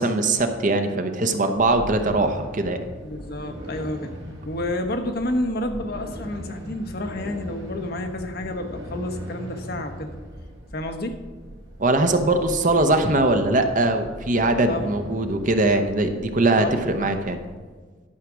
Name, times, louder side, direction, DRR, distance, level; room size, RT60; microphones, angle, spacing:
voice 1, 0.0-2.8 11.8-17.4, right 2 dB, 40° right, 7 dB, 0.7 m, -21 dB
sound 1, 1.5-17.5, equal, 60° right, 2.0 m, -39 dB
voice 2, 3.0-4.1 4.4-10.1 10.7-11.2 14.7-14.9 16.6-17.1, left 1 dB, 50° left, 5 dB, 0.9 m, -30 dB
11.5 x 4.9 x 6.1 m, 1.4 s
head